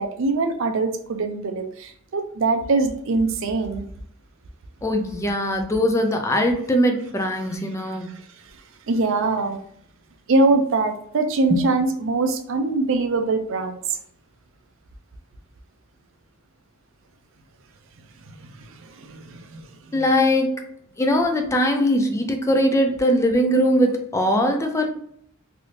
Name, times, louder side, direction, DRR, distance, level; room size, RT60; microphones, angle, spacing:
voice 1, 0.0-3.8 8.9-9.6 10.3-13.8 18.4-19.6, right 3 dB, 65° right, 6 dB, 0.5 m, -23 dB
voice 2, 4.8-8.1 11.5-11.6 19.9-20.6 21.0-24.9, equal, 15° left, 4 dB, 0.4 m, -21 dB
3.3 x 2.6 x 2.7 m, 0.67 s
head